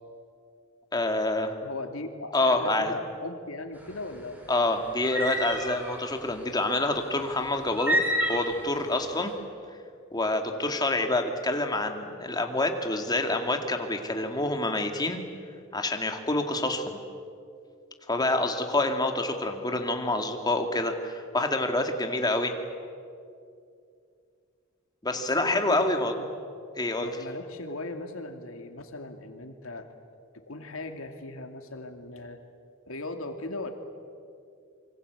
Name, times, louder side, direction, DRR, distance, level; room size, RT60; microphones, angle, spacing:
voice 1, 0.9-1.6 2.3-2.9 4.5-8.0 8.3-9.3 10.1-15.2 15.7-17.0 18.1-22.5 25.0-26.1 26.8-27.1, left 2 dB, 20° left, 5 dB, 2.3 m, -27 dB
voice 2, 1.6-4.4 9.1-9.2 10.5-10.6 16.6-16.8 22.0-22.3 25.1-25.9 26.2-26.3 27.0-29.9 30.3-32.4 32.9-33.7, left 2 dB, 90° left, 6 dB, 2.5 m, -38 dB
sound 1, 3.8-9.2, equal, 10° right, 4.5 m, -30 dB
26.0 x 24.5 x 8.3 m, 2.4 s
head